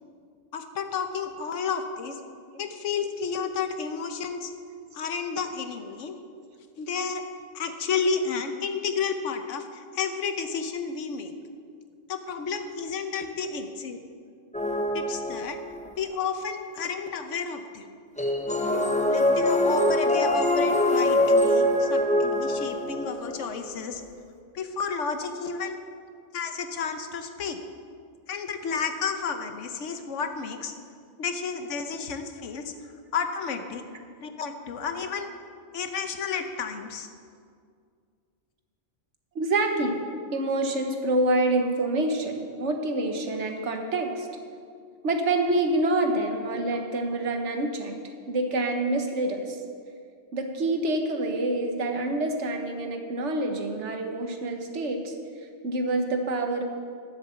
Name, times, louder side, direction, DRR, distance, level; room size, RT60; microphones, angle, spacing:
voice 1, 0.5-2.2 2.6-4.5 4.9-6.2 6.8-7.2 7.5-11.3 12.1-14.0 14.9-15.6 16.0-17.9 19.1-24.0 24.5-25.8 26.3-27.6 28.3-30.7 31.2-32.7 33.1-33.8 34.2-35.3 35.7-37.1, left 5 dB, 90° left, 7 dB, 1.2 m, -31 dB
sound 1, 14.5-15.9 18.2-23.4, left 1 dB, 10° left, 0.6 m, -23 dB
voice 2, 39.3-40.0 40.3-44.3 45.0-47.9 48.3-49.6 50.3-55.1 55.6-56.6, right 2 dB, 75° right, 4 dB, 1.4 m, -27 dB
10.5 x 7.7 x 6.9 m, 2.2 s
omnidirectional pair, 1.2 m